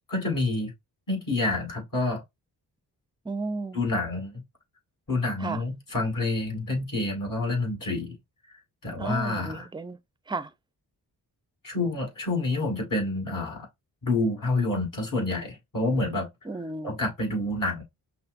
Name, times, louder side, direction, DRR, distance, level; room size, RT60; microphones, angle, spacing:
voice 1, 0.1-0.7 1.1-2.2 3.7-4.4 5.1-8.2 8.8-9.7 11.6-13.7 14.0-16.3 16.8-17.8, left 2 dB, 50° left, 2.0 m, -28 dB
voice 2, 3.3-3.8 5.4-5.6 9.0-10.0 10.3-10.5 16.5-17.0, right 3 dB, 10° right, 0.4 m, -33 dB
5.7 x 2.0 x 2.5 m
cardioid pair, 55°, 42 cm